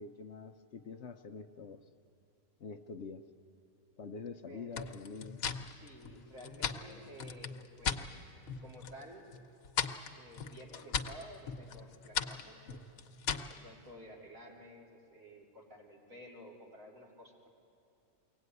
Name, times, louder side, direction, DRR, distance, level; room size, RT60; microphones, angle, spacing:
voice 1, 0.0-1.8 2.6-3.2 4.0-5.4, left 5 dB, 60° left, 7 dB, 0.9 m, -46 dB
voice 2, 4.5-5.0 5.7-8.3 8.6-9.3 10.2-12.8 13.5-17.5, equal, 65° right, -3 dB, 4.0 m, -53 dB
sound 1, 4.7-8.1 8.4-9.0 9.3-13.6, left 6 dB, 75° left, 1.3 m, -38 dB
23.0 x 17.5 x 9.5 m, 2.6 s
omnidirectional pair, 1.5 m